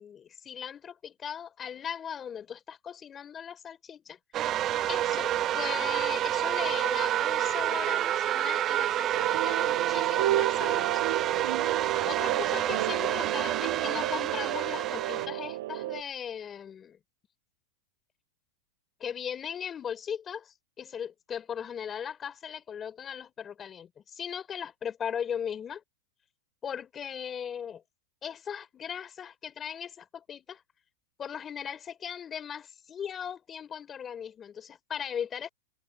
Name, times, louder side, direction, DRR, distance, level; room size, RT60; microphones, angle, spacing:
voice 1, 0.0-4.2 4.9-11.0 12.1-17.0 19.0-25.8 26.6-27.8 28.2-30.6 31.2-35.5, left 8 dB, 25° left, 4.1 m, -38 dB
sound 1, 4.3-15.3, right 12 dB, 35° right, 0.8 m, -28 dB
sound 2, 9.1-16.0, right 15 dB, 70° right, 0.8 m, -32 dB
hypercardioid pair, 125°, 0 cm